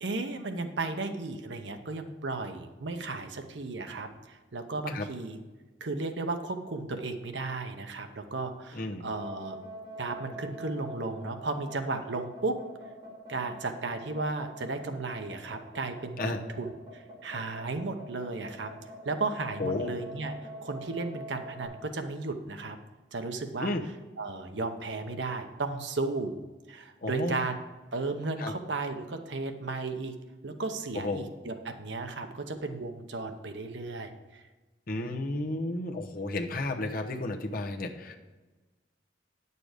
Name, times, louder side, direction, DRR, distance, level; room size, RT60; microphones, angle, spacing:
voice 1, 0.0-5.4 5.8-9.6 10.0-12.6 13.3-18.7 19.0-20.3 20.6-22.8 23.1-23.7 24.2-26.4 26.7-27.6 27.9-30.2 30.4-34.4 34.9-35.1, right 3 dB, 85° right, 6 dB, 0.9 m, -34 dB
voice 2, 8.7-9.0 16.2-16.4 19.6-19.9 23.6-23.8 27.0-27.4 28.4-28.5 30.9-31.3 34.9-38.2, left 2 dB, 55° left, 2 dB, 1.0 m, -32 dB
sound 1, 9.1-21.6, right 1 dB, 30° right, 2.9 m, -44 dB
9.3 x 6.8 x 5.0 m, 1.2 s
head